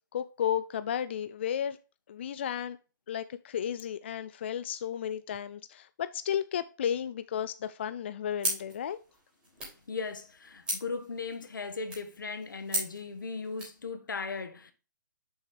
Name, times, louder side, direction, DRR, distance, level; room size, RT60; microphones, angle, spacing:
voice 1, 0.1-1.8 2.1-2.8 3.1-9.0, left 9 dB, 35° left, 0.3 m, -33 dB
sound 1, 8.4-13.8, right 1 dB, 10° right, 3.3 m, -38 dB
voice 2, 9.9-14.7, left 4 dB, 85° left, 1.5 m, -37 dB
7.0 x 5.7 x 3.2 m
hypercardioid pair, 165°, 10 cm